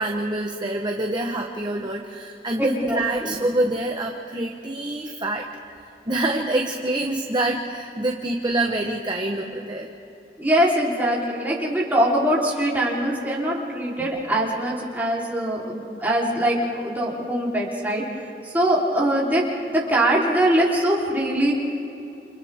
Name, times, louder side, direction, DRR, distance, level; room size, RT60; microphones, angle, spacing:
voice 1, 0.0-5.5 6.1-9.9, right 2 dB, 25° right, 1 dB, 1.1 m, -26 dB
voice 2, 2.6-3.4 10.4-21.5, right 1 dB, 10° right, -5 dB, 3.6 m, -22 dB
30.0 x 28.0 x 3.6 m, 2.8 s
head